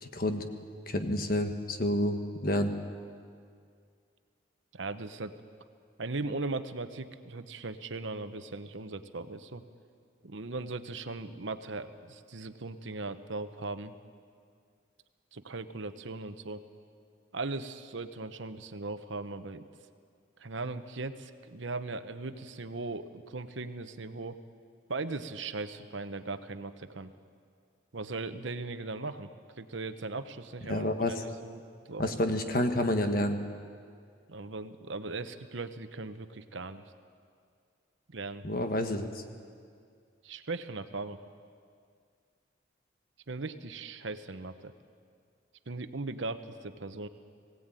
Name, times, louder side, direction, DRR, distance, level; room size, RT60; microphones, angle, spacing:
voice 1, 0.0-0.4 0.9-2.7 30.7-31.2 32.0-33.4 38.4-39.2, left 1 dB, 45° left, 6 dB, 1.4 m, -29 dB
voice 2, 4.7-5.3 6.0-9.6 10.2-14.0 15.3-16.6 17.3-19.6 20.4-24.4 24.9-27.1 27.9-29.3 29.6-31.6 31.9-32.1 34.3-36.8 38.1-38.4 40.2-41.2 43.3-44.7 45.7-47.1, right 3 dB, 75° right, 10 dB, 1.0 m, -38 dB
21.0 x 17.0 x 9.1 m, 2.2 s
head